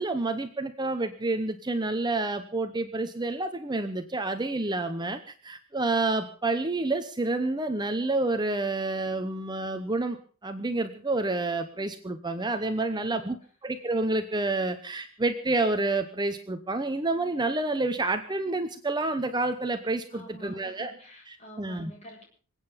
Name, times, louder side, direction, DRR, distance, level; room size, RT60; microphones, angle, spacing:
voice 1, 0.0-10.2 10.4-13.4 13.6-20.9 21.6-21.9, right 2 dB, 20° right, 7 dB, 0.9 m, -29 dB
voice 2, 12.8-13.4 20.1-22.2, right 1 dB, 30° left, 0 dB, 7.5 m, -47 dB
26.5 x 9.0 x 5.2 m, 0.41 s
head